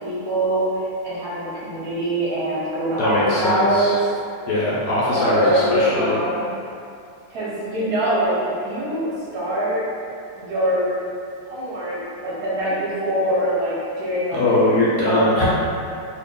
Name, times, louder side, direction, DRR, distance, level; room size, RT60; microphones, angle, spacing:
voice 1, 0.0-3.9 5.1-6.4 7.3-9.8 10.3-10.9 11.5-14.4 15.1-15.5, right 1 dB, 60° right, -8 dB, 1.1 m, -23 dB
voice 2, 3.0-4.0 4.5-6.2 14.3-15.5, left 1 dB, 70° left, -7 dB, 1.0 m, -20 dB
2.8 x 2.5 x 3.6 m, 2.4 s
omnidirectional pair, 2.1 m